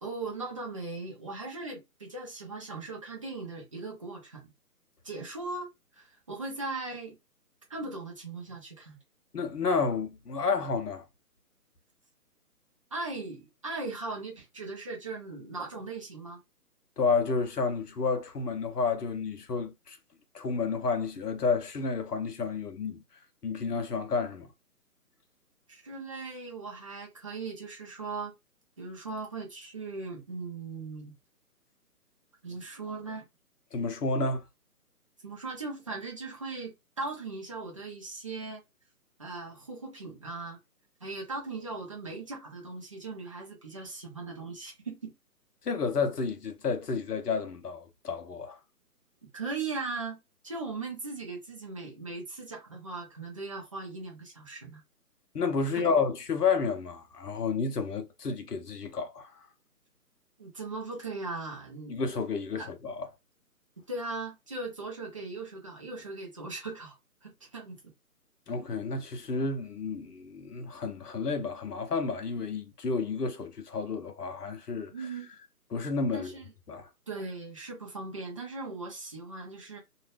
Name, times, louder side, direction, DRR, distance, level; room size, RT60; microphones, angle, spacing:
voice 1, 0.0-4.5 5.0-5.7 6.0-7.2 7.7-9.0 12.9-16.4 25.7-28.3 28.8-31.1 32.4-33.3 35.2-38.6 39.2-40.6 41.0-45.1 49.3-50.2 50.4-54.8 55.7-55.8 60.4-62.0 62.6-62.7 63.9-67.9 74.9-75.3 76.1-76.5 77.1-79.8, right 3 dB, 20° right, 0.6 m, -38 dB
voice 2, 9.3-11.0 17.0-20.0 20.3-23.0 23.4-24.5 33.7-34.4 45.6-48.6 55.3-59.5 61.9-63.1 68.5-74.9 75.7-76.3 76.7-76.9, left 4 dB, 80° left, 1.0 m, -30 dB
2.7 x 2.3 x 3.3 m
figure-of-eight pair, 150°, 46 cm